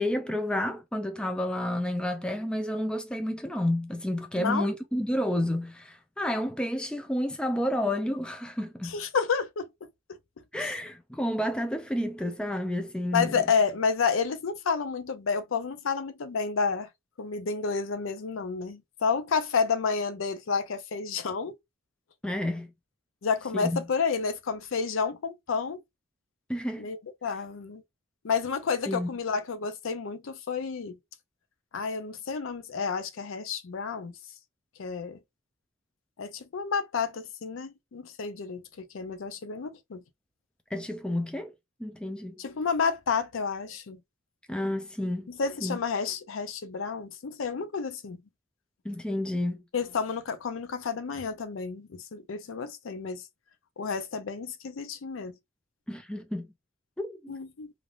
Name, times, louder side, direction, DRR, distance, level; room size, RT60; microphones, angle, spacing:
voice 1, 0.0-8.9 10.5-13.4 22.2-22.7 23.5-23.8 26.5-26.9 28.9-29.1 40.7-41.5 41.8-42.4 44.5-45.3 45.6-45.8 48.8-49.6 55.9-56.5 57.0-57.3, left 1 dB, 5° left, 0.3 m, -30 dB
voice 2, 4.3-4.7 8.8-9.7 10.6-10.7 13.1-16.9 17.2-21.5 23.2-25.8 26.8-27.8 28.2-31.0 31.7-34.1 34.8-35.2 36.2-40.0 42.4-44.0 45.3-48.2 49.7-53.2 53.8-55.3 57.3-57.7, left 5 dB, 70° left, 0.5 m, -30 dB
3.2 x 2.5 x 2.4 m
head